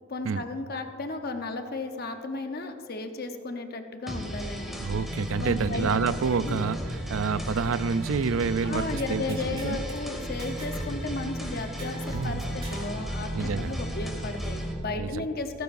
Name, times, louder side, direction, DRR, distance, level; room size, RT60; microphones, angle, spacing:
voice 1, 0.1-4.8 5.4-5.9 6.5-6.6 8.6-15.6, left 2 dB, 50° left, 6 dB, 0.9 m, -34 dB
sound 1, 4.1-14.7, equal, ahead, 1.7 m, -34 dB
voice 2, 4.8-9.4 9.6-9.8 12.1-12.5 13.3-13.8 15.0-15.3, right 5 dB, 85° right, 14 dB, 0.4 m, -28 dB
sound 2, 9.0-10.0 10.4-11.0 11.2-11.3 11.8-12.9, right 1 dB, 30° right, 2.9 m, -43 dB
16.5 x 14.5 x 2.6 m, 2.9 s
head